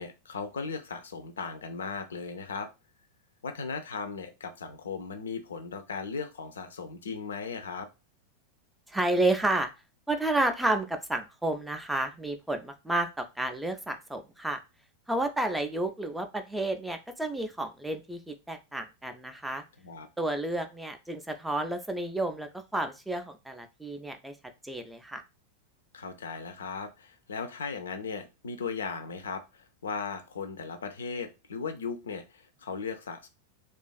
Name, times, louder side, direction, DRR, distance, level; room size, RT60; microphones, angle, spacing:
voice 1, 0.0-2.7 3.4-7.9 19.8-20.1 25.9-33.3, left 5 dB, 65° left, 8 dB, 0.4 m, -37 dB
voice 2, 8.9-9.7 10.1-14.6 15.1-19.6 20.2-24.3 24.6-25.2, right 2 dB, 5° right, 6 dB, 0.3 m, -31 dB
2.4 x 2.3 x 2.2 m, 0.27 s
figure-of-eight pair, 90°, 0 cm